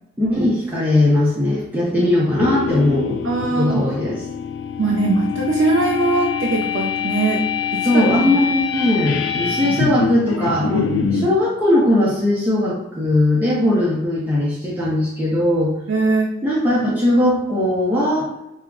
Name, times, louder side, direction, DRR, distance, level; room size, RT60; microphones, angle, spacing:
voice 1, 0.2-3.2 3.6-4.2 7.8-15.7 16.4-18.3, left 1 dB, 10° right, -7 dB, 0.5 m, -19 dB
sound 1, 2.2-11.3, left 6 dB, 70° left, 0.3 m, -24 dB
voice 2, 3.2-3.8 4.8-7.4 7.7-8.3 9.6-9.7 15.9-16.3, right 3 dB, 75° right, -2 dB, 0.4 m, -20 dB
2.3 x 2.0 x 3.5 m, 0.90 s
head